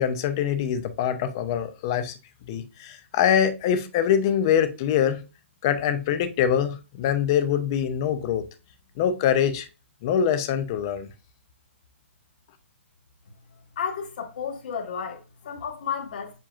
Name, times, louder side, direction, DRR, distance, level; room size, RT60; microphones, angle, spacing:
voice 1, 0.0-2.2 2.5-5.2 5.6-8.4 9.0-9.7 10.0-11.1, left 9 dB, 20° left, 0.4 m, -24 dB
voice 2, 13.8-16.3, left 7 dB, 40° left, 1.4 m, -32 dB
7.3 x 2.8 x 2.4 m
hypercardioid pair, 175°, 7 cm